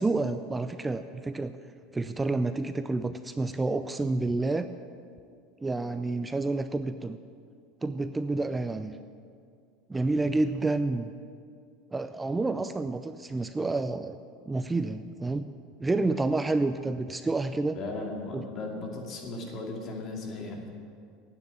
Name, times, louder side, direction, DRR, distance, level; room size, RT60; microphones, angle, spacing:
voice 1, 0.0-1.5 1.9-4.7 5.6-7.2 7.8-9.0 9.9-11.1 11.9-14.2 14.5-15.5 15.8-17.8 18.3-18.4, right 2 dB, 15° right, 10 dB, 0.4 m, -29 dB
voice 2, 17.7-20.6, left 2 dB, 45° left, 0 dB, 2.5 m, -36 dB
9.6 x 9.0 x 8.5 m, 2.3 s
supercardioid pair, 115°, 0 cm